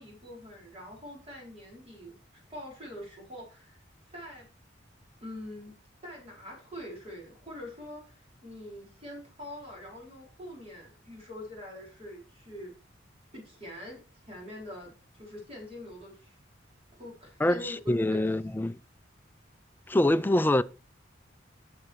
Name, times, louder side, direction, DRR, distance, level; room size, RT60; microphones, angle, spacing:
voice 1, 0.0-4.5 5.2-5.7 6.0-12.7 13.3-14.0 14.3-16.3 17.0-18.3, left 1 dB, 30° right, 4.6 m, -44 dB
voice 2, 17.4-18.8 19.9-20.6, left 1 dB, 10° left, 0.3 m, -25 dB
8.9 x 6.6 x 4.7 m
head